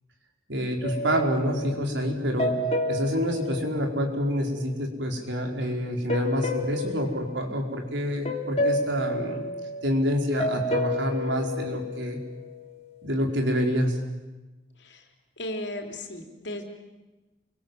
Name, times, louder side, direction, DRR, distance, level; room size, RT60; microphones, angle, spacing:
voice 1, 0.5-2.6 2.9-9.4 9.8-12.2 13.0-14.0, equal, 85° right, 3 dB, 4.7 m, -27 dB
sound 1, 0.8-4.7 6.1-8.0 8.2-12.8, left 1 dB, 35° left, 2.9 m, -31 dB
voice 2, 15.4-16.6, left 1 dB, 75° left, 4 dB, 3.8 m, -35 dB
29.0 x 24.0 x 7.8 m, 1.1 s
head